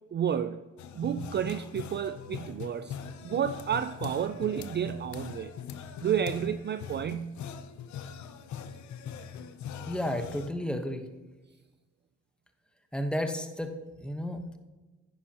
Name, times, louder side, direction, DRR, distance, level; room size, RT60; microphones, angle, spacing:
voice 1, 0.1-0.6 0.9-3.0 3.2-5.5 6.0-7.4, right 8 dB, 35° right, 11 dB, 0.4 m, -31 dB
sound 1, 0.8-10.5, left 8 dB, 70° left, 0.8 m, -42 dB
voice 2, 9.9-11.0 12.9-14.6, equal, 5° left, 5 dB, 1.2 m, -32 dB
10.0 x 10.0 x 3.0 m, 1.2 s
cardioid pair, 90°, 30 cm